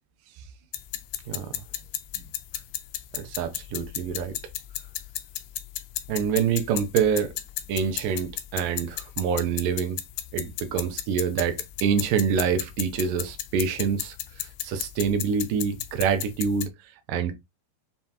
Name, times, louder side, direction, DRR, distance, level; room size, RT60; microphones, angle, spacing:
sound 1, 0.7-16.7, left 13 dB, 80° left, 2.2 m, -35 dB
voice 1, 1.3-1.6 3.1-4.4 6.1-7.4 7.7-10.0 10.3-16.7 17.1-17.3, right 7 dB, 75° right, 2.1 m, -26 dB
7.1 x 2.4 x 2.8 m
omnidirectional pair, 4.3 m